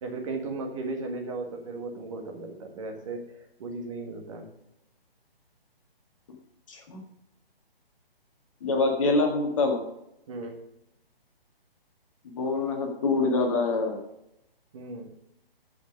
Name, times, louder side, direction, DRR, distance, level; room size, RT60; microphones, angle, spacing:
voice 1, 0.0-3.3 3.6-4.5 10.3-10.6 14.7-15.1, right 3 dB, 35° right, 1 dB, 1.6 m, -36 dB
voice 2, 6.7-7.0 8.6-9.8 12.2-14.0, left 3 dB, 35° left, 2 dB, 1.6 m, -25 dB
13.5 x 5.3 x 5.2 m, 0.84 s
figure-of-eight pair, 135°, 30 cm